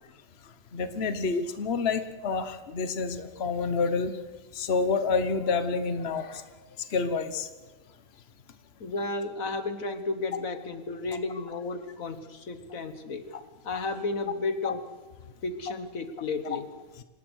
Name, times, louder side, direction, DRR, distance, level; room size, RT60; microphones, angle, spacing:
voice 1, 0.7-4.1 4.5-6.4 6.9-7.5 14.6-14.7, left 4 dB, 50° left, 9 dB, 1.3 m, -28 dB
voice 2, 8.8-13.2 13.6-14.8 15.4-16.7, left 3 dB, 85° left, 9 dB, 1.9 m, -33 dB
27.0 x 18.5 x 6.3 m, 1.2 s
omnidirectional pair, 1.4 m